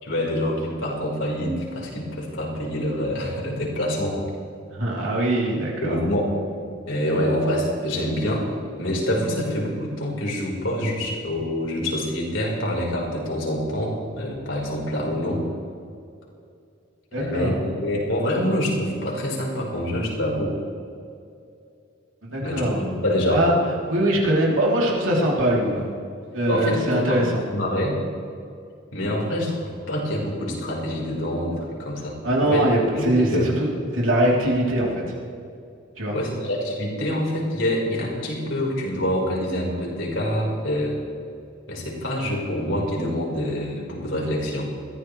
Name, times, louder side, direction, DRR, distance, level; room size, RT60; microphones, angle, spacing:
voice 1, 0.0-4.2 5.8-6.3 6.9-8.5 8.8-15.4 17.1-20.5 22.4-23.4 26.5-27.2 27.5-28.0 28.9-32.6 32.9-33.4 36.1-41.0 41.7-44.7, left 1 dB, 75° left, -2 dB, 4.5 m, -26 dB
voice 2, 4.7-6.0 17.1-17.6 22.2-22.9 23.3-23.5 23.9-25.9 26.3-27.4 32.2-35.1 36.0-36.1, right 1 dB, 85° right, -3 dB, 3.3 m, -22 dB
21.5 x 15.0 x 3.3 m, 2.4 s
head